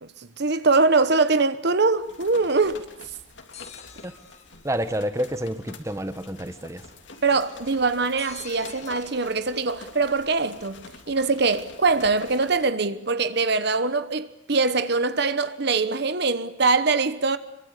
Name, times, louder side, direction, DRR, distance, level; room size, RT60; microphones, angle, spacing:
voice 1, 0.0-2.8 7.2-17.4, right 3 dB, 60° right, 1.1 m, -23 dB
sound 1, 1.9-12.7, left 3 dB, 65° left, 3.2 m, -46 dB
sound 2, 3.5-4.8 8.2-9.7, left 7 dB, 35° left, 1.9 m, -46 dB
voice 2, 4.6-6.8, equal, 15° right, 1.3 m, -29 dB
26.5 x 23.5 x 8.4 m
head